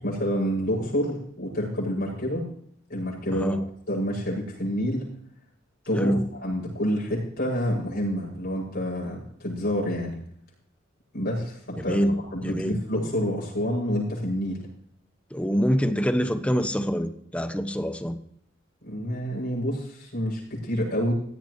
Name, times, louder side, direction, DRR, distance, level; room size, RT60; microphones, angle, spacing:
voice 1, 0.0-2.5 2.9-3.6 3.9-5.0 5.9-10.2 11.1-12.0 12.3-14.6 18.8-21.1, equal, 55° left, -4 dB, 7.2 m, -28 dB
voice 2, 3.3-3.6 6.0-6.2 11.8-12.8 15.3-18.2, equal, 5° left, 10 dB, 1.0 m, -25 dB
17.0 x 14.0 x 3.2 m, 0.68 s
head